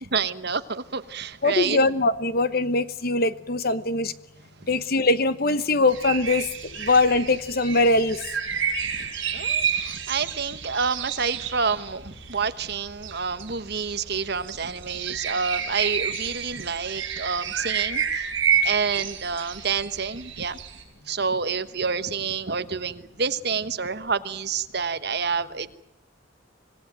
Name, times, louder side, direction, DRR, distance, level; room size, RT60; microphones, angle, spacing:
voice 1, 0.0-1.8 8.8-18.3 18.6-20.6 21.1-25.8, right 5 dB, 50° right, 12 dB, 1.2 m, -28 dB
voice 2, 1.4-4.1 4.7-8.2, left 2 dB, 45° left, 13 dB, 1.1 m, -22 dB
sound 1, 5.9-20.8, right 7 dB, 70° right, 6.1 m, -30 dB
25.5 x 18.5 x 9.1 m, 0.81 s
head